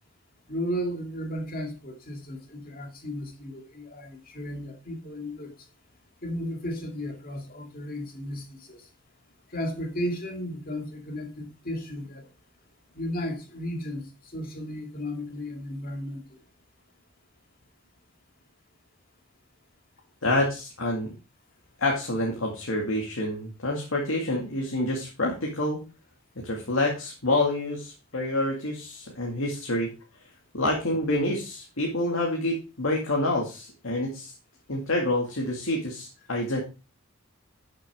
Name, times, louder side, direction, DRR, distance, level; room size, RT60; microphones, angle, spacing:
voice 1, 0.5-5.5 6.2-8.8 9.5-12.2 12.9-16.2, equal, 45° left, 2.3 m, -34 dB
voice 2, 20.2-21.1 21.8-25.8 26.4-29.9 30.5-34.3 34.7-36.6, left 1 dB, 80° left, 2.2 m, -27 dB
11.5 x 6.6 x 3.6 m
head